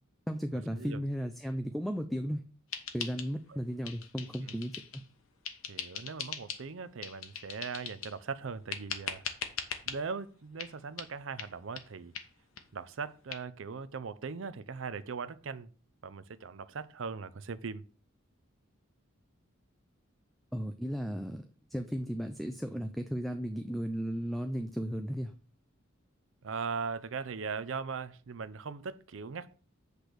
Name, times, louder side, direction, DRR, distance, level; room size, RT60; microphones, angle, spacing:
voice 1, 0.3-2.4 2.9-5.0 20.5-21.4 21.7-25.3, equal, ahead, 0.4 m, -35 dB
sound 1, 2.7-3.6 3.8-5.1 5.4-6.7 7.0-8.2 8.7-10.0 10.6-10.7 11.0-11.1 11.4-11.5 11.8-11.9 12.1-12.3 12.6-12.7 12.9-13.0 13.3-13.4, left 7 dB, 80° left, 1.0 m, -40 dB
voice 2, 5.7-9.2 9.9-12.1 12.7-15.7 16.0-17.8 26.4-29.5, right 5 dB, 65° right, 0.5 m, -39 dB
8.2 x 3.4 x 6.0 m
head